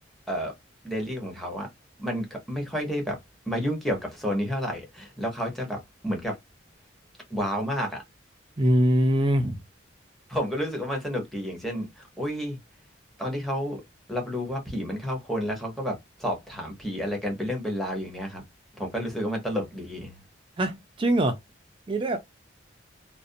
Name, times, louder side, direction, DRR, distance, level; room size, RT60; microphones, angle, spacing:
voice 1, 0.8-1.7 2.0-3.2 3.5-6.3 7.3-8.0 10.3-12.6 13.2-13.8 14.1-18.4 18.8-20.2, equal, ahead, 0.8 m, -30 dB
voice 2, 8.6-9.6 20.6-21.4 21.9-22.2, right 1 dB, 25° right, 0.4 m, -23 dB
2.4 x 2.1 x 2.5 m
head